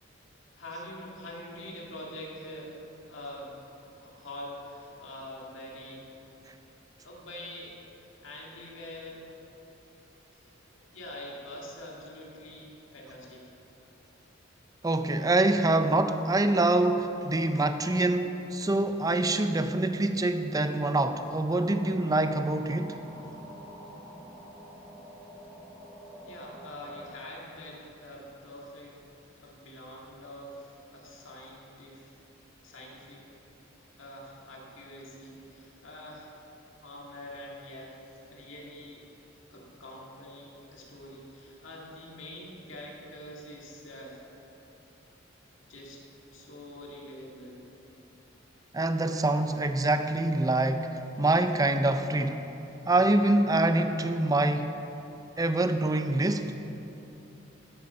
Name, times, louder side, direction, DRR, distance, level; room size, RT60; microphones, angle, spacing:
voice 1, 0.6-3.6 3.9-6.1 7.0-9.3 10.3-13.5 26.2-29.0 29.4-32.1 32.6-33.3 34.0-36.4 36.8-39.0 39.5-44.2 45.6-46.0 46.3-47.6, left 1 dB, 70° left, -2 dB, 2.0 m, -45 dB
voice 2, 14.8-23.0 48.7-52.5 52.9-54.7 55.4-56.5, right 2 dB, 20° right, 9 dB, 0.5 m, -25 dB
sound 1, 21.4-27.1, equal, 10° left, 2.3 m, -47 dB
13.5 x 6.7 x 5.6 m, 3.0 s
head